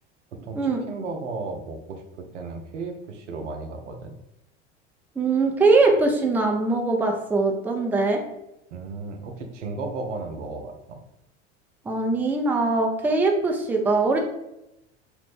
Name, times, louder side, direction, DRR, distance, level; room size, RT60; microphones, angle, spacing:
voice 1, 0.3-2.0 2.3-4.2 8.7-11.0, right 3 dB, 90° right, 4 dB, 0.5 m, -34 dB
voice 2, 5.2-8.2 11.9-14.2, right 3 dB, 5° right, 2 dB, 0.3 m, -21 dB
3.1 x 2.0 x 3.1 m, 0.86 s
hypercardioid pair, 80°, 35 cm